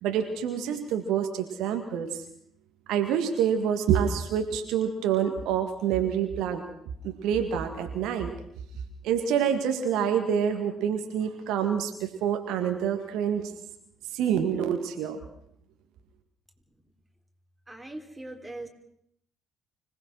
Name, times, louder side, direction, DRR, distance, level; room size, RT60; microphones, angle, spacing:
voice 1, 0.0-2.3 2.9-6.6 7.0-8.3 9.0-13.5 14.1-15.2, right 8 dB, 60° right, 6 dB, 1.9 m, -27 dB
voice 2, 17.7-18.7, right 2 dB, 10° right, 4 dB, 4.0 m, -40 dB
25.5 x 18.5 x 6.2 m, 0.72 s
figure-of-eight pair, 45°, 0 cm